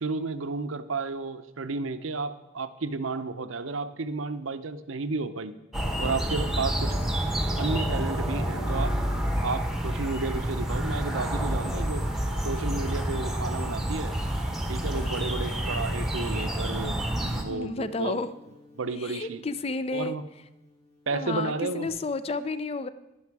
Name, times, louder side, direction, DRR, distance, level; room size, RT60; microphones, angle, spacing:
voice 1, 0.0-5.5 6.0-7.0 7.6-9.0 9.4-12.1 12.4-14.1 14.7-17.0 17.4-18.2 18.8-19.4 19.9-20.2 21.1-21.9, right 3 dB, 90° right, 12 dB, 0.7 m, -32 dB
sound 1, 5.7-17.4, equal, ahead, 1.0 m, -29 dB
sound 2, 5.9-21.9, equal, 50° left, 4.1 m, -47 dB
voice 2, 17.5-18.3 19.0-20.2 21.1-22.9, left 3 dB, 30° left, 14 dB, 0.4 m, -31 dB
11.5 x 11.0 x 4.7 m, 1.0 s
head